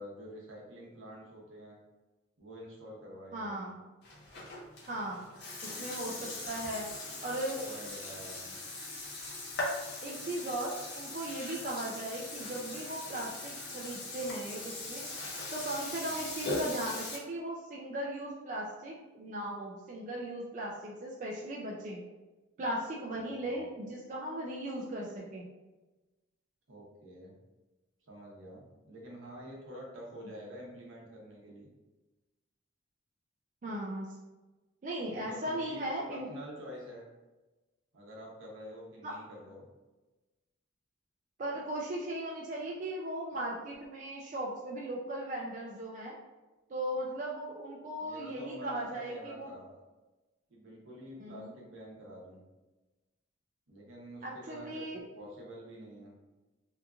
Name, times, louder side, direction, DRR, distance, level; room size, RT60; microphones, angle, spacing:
voice 1, 0.0-1.8 2.4-3.6 6.3-6.4 7.0-8.6 16.0-16.2 23.4-23.6 26.7-27.4 28.1-31.7 35.0-37.0 37.9-39.7 48.0-49.8 50.5-52.4 53.7-54.9 55.2-56.1, equal, 85° right, -3 dB, 0.8 m, -48 dB
voice 2, 3.3-3.7 4.9-5.2 5.6-6.9 7.2-7.6 10.0-15.1 15.5-22.0 22.6-25.4 33.6-34.2 34.8-36.3 39.0-39.2 41.4-46.2 46.7-49.5 51.2-51.5 54.2-55.1, right 1 dB, 40° right, -3 dB, 0.3 m, -37 dB
Burping eructation, 4.0-17.2, left 2 dB, 55° left, 0.6 m, -40 dB
2.8 x 2.4 x 2.3 m, 1.1 s
head